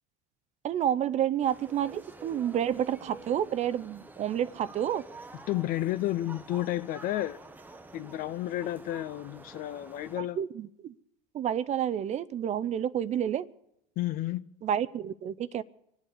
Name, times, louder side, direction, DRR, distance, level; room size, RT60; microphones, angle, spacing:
voice 1, 0.6-5.0 10.2-10.9 11.3-13.5 14.6-15.6, right 10 dB, 35° right, 0.5 m, -29 dB
sound 1, 1.4-10.2, right 2 dB, 10° right, 0.8 m, -49 dB
voice 2, 5.5-7.4 7.9-10.4 14.0-14.5, left 14 dB, 45° left, 0.6 m, -31 dB
24.5 x 8.3 x 6.7 m
supercardioid pair, 100°, 20 cm